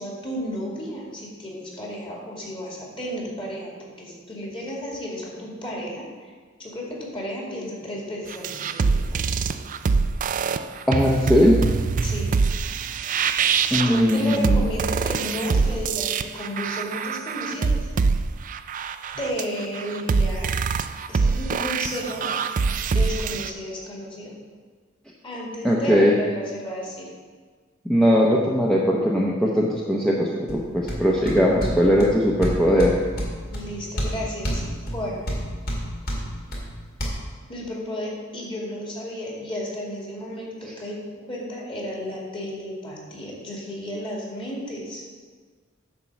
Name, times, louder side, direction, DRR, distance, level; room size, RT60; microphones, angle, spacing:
voice 1, 0.0-6.3 6.6-9.5 12.0-12.3 13.7-18.0 19.2-20.5 21.1-22.3 22.9-24.3 25.2-27.1 33.4-35.3 37.5-41.0 41.3-45.1, equal, 25° left, -3 dB, 2.4 m, -33 dB
sound 1, 8.3-23.5, right 5 dB, 40° right, 0.4 m, -24 dB
voice 2, 10.9-11.6 13.7-14.7 25.6-26.1 27.8-32.9, equal, 5° left, -4 dB, 0.8 m, -19 dB
sound 2, 30.5-37.1, equal, 50° left, 2.1 m, -30 dB
10.0 x 4.6 x 7.2 m, 1.5 s
head